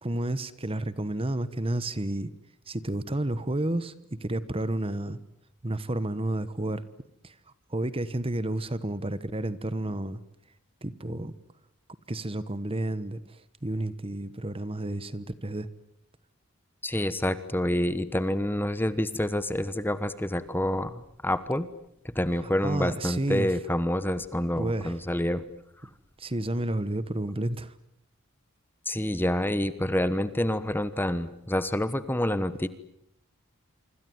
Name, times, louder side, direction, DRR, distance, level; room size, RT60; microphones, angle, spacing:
voice 1, 0.0-2.3 2.7-5.2 5.6-6.8 7.2-7.3 7.7-10.2 10.8-11.3 12.1-15.7 22.6-23.5 24.6-25.0 26.2-27.7, right 1 dB, 25° right, 15 dB, 1.2 m, -31 dB
voice 2, 16.8-21.7 22.0-25.4 28.9-32.7, left 1 dB, 10° left, 13 dB, 1.1 m, -28 dB
26.5 x 25.5 x 7.9 m, 0.74 s
head